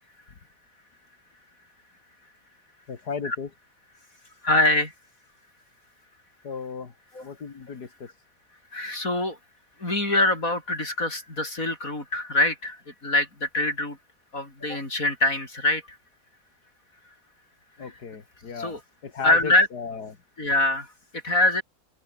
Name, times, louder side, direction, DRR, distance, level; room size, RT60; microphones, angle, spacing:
voice 1, 2.9-3.5 6.4-6.9 7.2-8.1 17.8-20.2, left 5 dB, 85° left, 2.8 m, -35 dB
voice 2, 4.4-4.9 7.1-7.3 8.7-9.4 9.8-14.0 14.3-16.0 17.8-17.9 18.6-18.8 19.2-19.7 20.4-21.6, left 2 dB, 55° left, 7.1 m, -24 dB
omnidirectional pair, 1.7 m